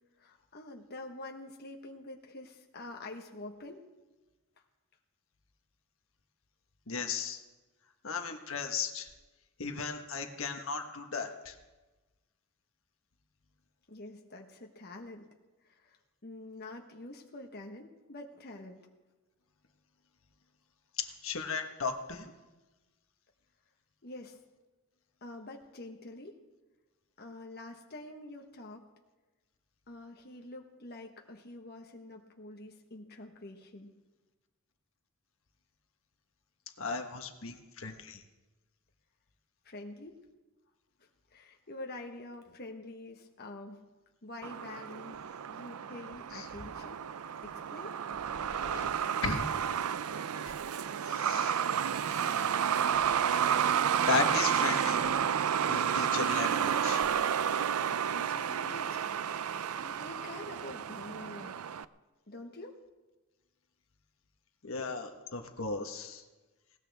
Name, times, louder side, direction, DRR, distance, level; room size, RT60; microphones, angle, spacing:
voice 1, 0.2-3.8 13.9-15.3 15.6-18.8 24.0-24.4 25.2-26.3 27.2-28.9 29.9-33.9 39.6-40.2 41.3-43.9 44.2-45.2 45.5-47.0 47.4-47.9 57.9-59.0 59.8-61.5 62.3-62.8, left 2 dB, 45° left, 2 dB, 1.2 m, -46 dB
voice 2, 6.9-7.4 8.0-9.1 9.6-11.6 21.0-22.3 36.8-38.2 46.3-46.4 48.5-48.9 49.2-49.5 50.4-50.5 51.1-51.6 51.9-52.5 54.1-55.0 55.7-57.0 64.6-66.2, left 5 dB, 65° left, 5 dB, 1.3 m, -36 dB
Truck, 44.4-61.8, right 8 dB, 85° right, 0.5 m, -31 dB
20.0 x 18.0 x 3.5 m, 1.2 s
head